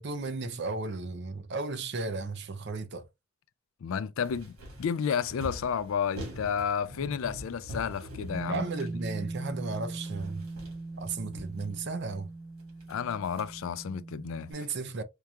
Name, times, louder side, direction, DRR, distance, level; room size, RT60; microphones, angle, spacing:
voice 1, 0.0-3.1 8.5-10.4 11.0-12.3 14.5-15.0, right 3 dB, 50° right, 0.5 m, -34 dB
voice 2, 3.8-8.6 12.9-14.5, left 7 dB, 70° left, 0.3 m, -31 dB
sound 1, 4.2-9.8 10.0-12.1 12.6-13.8, equal, 75° right, 1.7 m, -45 dB
Bass guitar, 8.3-14.5, right 2 dB, 25° right, 1.9 m, -40 dB
4.6 x 2.3 x 2.7 m
head